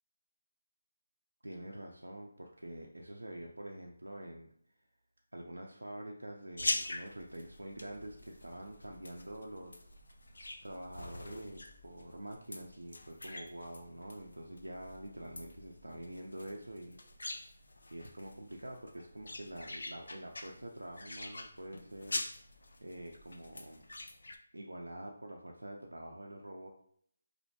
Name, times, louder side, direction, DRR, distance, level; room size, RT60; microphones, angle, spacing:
voice 1, 1.4-4.5 5.3-10.0 10.3-17.0 17.4-17.6 17.9-22.2 22.5-23.8 24.5-26.7, right 1 dB, 90° right, 0 dB, 0.3 m, -46 dB
sound 1, 6.6-24.4, left 2 dB, 75° left, 0.3 m, -44 dB
2.4 x 2.1 x 2.7 m, 0.64 s
figure-of-eight pair, 155°, 0 cm